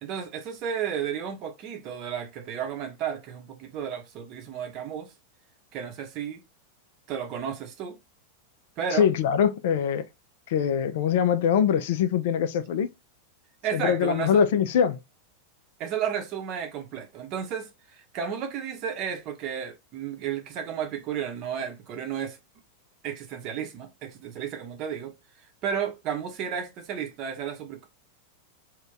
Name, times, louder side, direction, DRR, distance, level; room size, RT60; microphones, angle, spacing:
voice 1, 0.0-5.1 5.7-6.4 7.1-8.0 8.8-9.1 13.6-14.4 15.8-22.4 23.0-25.1 25.6-27.9, right 8 dB, 40° right, 0.7 m, -33 dB
voice 2, 8.9-10.1 10.5-12.9 13.7-15.0, left 8 dB, 55° left, 0.4 m, -23 dB
2.5 x 2.2 x 3.8 m
figure-of-eight pair, 90°, 0 cm